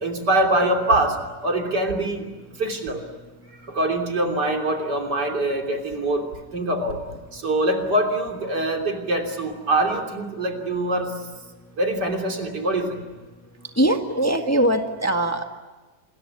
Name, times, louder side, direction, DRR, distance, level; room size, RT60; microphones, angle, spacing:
voice 1, 0.0-2.3 2.6-3.0 3.7-6.3 6.5-7.0 7.3-11.1 11.8-13.0, right 1 dB, 70° right, 3 dB, 3.8 m, -24 dB
voice 2, 13.8-15.4, right 1 dB, 10° left, 4 dB, 1.5 m, -21 dB
28.0 x 21.5 x 9.8 m, 1.2 s
omnidirectional pair, 1.9 m